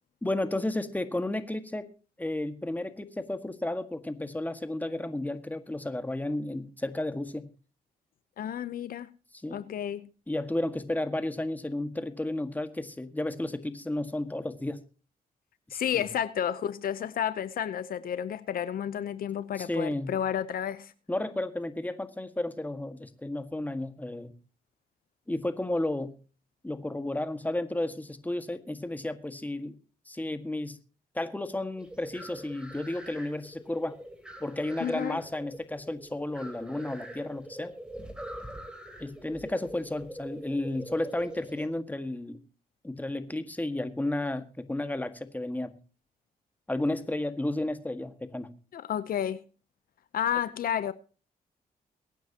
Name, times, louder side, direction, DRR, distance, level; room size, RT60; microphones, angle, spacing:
voice 1, 0.2-1.9 2.2-7.5 9.4-9.6 10.3-14.8 15.7-16.1 19.6-20.2 21.1-24.3 25.3-26.2 26.6-29.8 30.1-30.8 31.2-34.0 34.4-37.7 39.0-42.4 42.8-45.8 46.7-48.5, left 1 dB, 10° left, 1.7 m, -32 dB
voice 2, 8.4-9.1 9.5-10.1 15.7-20.9 34.8-35.2 48.7-49.4 50.1-50.9, left 9 dB, 70° left, 0.7 m, -31 dB
sound 1, 31.8-41.7, right 1 dB, 5° right, 3.5 m, -44 dB
23.0 x 9.3 x 2.9 m
cardioid pair, 80°, 16 cm